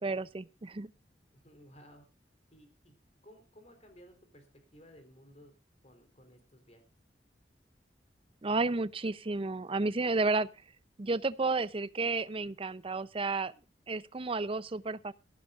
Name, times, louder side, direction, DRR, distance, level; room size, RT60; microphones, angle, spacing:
voice 1, 0.0-0.9 8.4-10.5 11.0-13.5 13.9-15.1, right 3 dB, 30° right, 0.6 m, -32 dB
voice 2, 1.3-2.1 2.5-2.9 3.2-4.5 4.7-5.5 5.8-6.8, equal, 35° left, 3.9 m, -57 dB
18.5 x 15.0 x 2.5 m
head